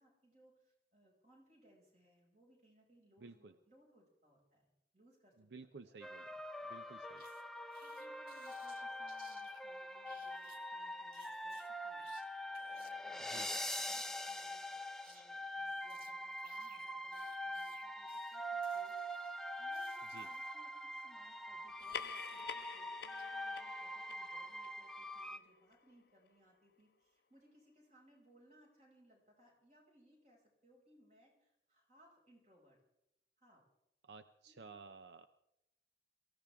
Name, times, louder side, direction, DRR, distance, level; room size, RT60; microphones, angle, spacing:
voice 1, 0.0-6.0 7.8-12.1 13.1-19.3 19.6-32.8 33.4-33.6 34.5-34.7, equal, 40° right, -2 dB, 5.8 m, -68 dB
voice 2, 3.2-3.5 5.5-6.3 6.7-7.2 13.2-13.5 20.1-20.3 34.0-35.3, right 4 dB, 80° right, 10 dB, 0.6 m, -54 dB
sound 1, 6.0-25.4, equal, 5° left, 0.5 m, -44 dB
sound 2, 7.2-7.4 7.7-9.6 10.1-10.7 11.1-12.2 12.5-12.9 13.2-14.6 14.8-15.2 15.5-20.5 21.8-22.8 23.2-23.3, right 4 dB, 55° right, 1.8 m, -65 dB
sound 3, 21.7-26.6, left 7 dB, 60° left, 0.6 m, -50 dB
23.5 x 15.0 x 3.5 m, 0.85 s
head